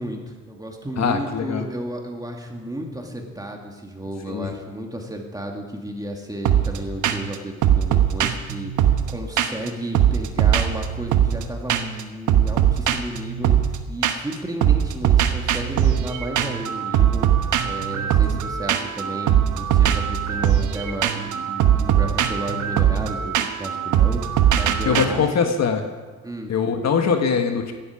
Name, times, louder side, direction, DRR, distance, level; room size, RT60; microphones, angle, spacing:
voice 1, 0.0-17.3 17.6-25.4 26.2-26.5, right 1 dB, 10° right, 1 dB, 2.4 m, -33 dB
voice 2, 1.0-1.7 4.3-4.5 24.8-25.9 26.5-27.7, left 6 dB, 60° left, 5 dB, 1.6 m, -22 dB
sound 1, 6.5-6.8 7.0-7.4 7.6-9.7 9.9-11.4 11.7-12.0 12.3-14.3 14.6-25.0, right 10 dB, 80° right, 1.1 m, -20 dB
15.5 x 12.0 x 5.1 m, 1.4 s
cardioid pair, 90°, 30 cm